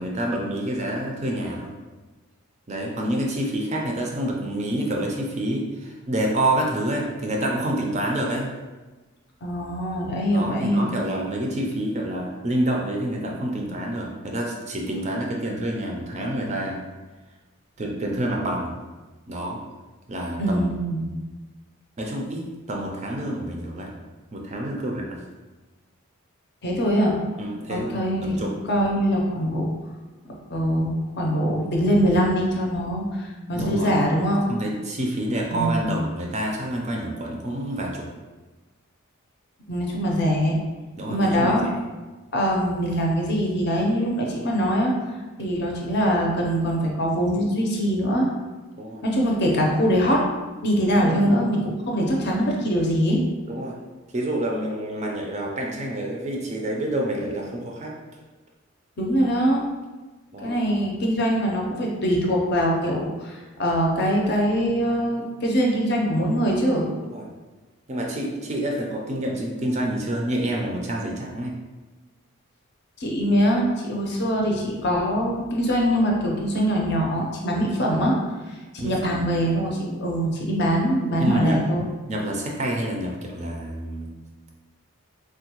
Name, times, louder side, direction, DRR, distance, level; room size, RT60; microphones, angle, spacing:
voice 1, 0.0-1.7 2.7-8.5 10.3-16.8 17.8-18.7 19.3-19.6 20.1-20.6 21.0-21.2 22.0-23.9 24.3-25.2 27.4-28.5 33.5-34.0 34.5-38.1 41.0-41.7 48.8-49.0 51.0-51.3 53.5-53.8 54.1-57.9 60.3-60.6 67.0-67.2 67.9-71.6 77.9-78.0 78.8-79.2 81.2-81.8 82.1-84.1, right 1 dB, 30° right, -1 dB, 0.4 m, -28 dB
voice 2, 9.4-10.9 20.4-21.0 26.6-27.1 27.7-28.4 28.6-29.7 30.5-34.4 35.5-36.0 39.7-40.6 41.1-41.7 42.3-48.3 49.0-50.2 50.6-53.2 59.0-59.7 60.4-66.9 73.0-78.2 78.5-81.8, equal, 50° left, -1 dB, 0.6 m, -23 dB
3.5 x 2.2 x 2.9 m, 1.2 s
head